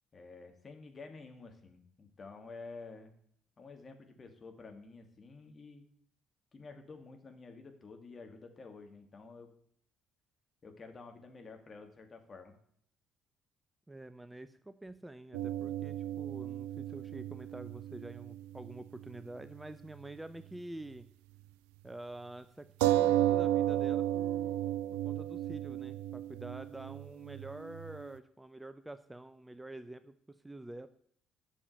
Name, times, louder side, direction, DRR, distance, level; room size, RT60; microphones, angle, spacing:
voice 1, 0.1-3.1 3.6-5.8 6.5-9.5 10.6-12.6, left 4 dB, 35° left, 5 dB, 2.3 m, -50 dB
voice 2, 13.9-21.1 21.8-30.9, right 1 dB, 10° right, 12 dB, 0.6 m, -47 dB
sound 1, 15.3-19.2 19.5-19.6 22.8-28.0, right 13 dB, 75° right, 0.5 m, -33 dB
8.4 x 6.9 x 8.5 m, 0.65 s
hypercardioid pair, 50°, 0 cm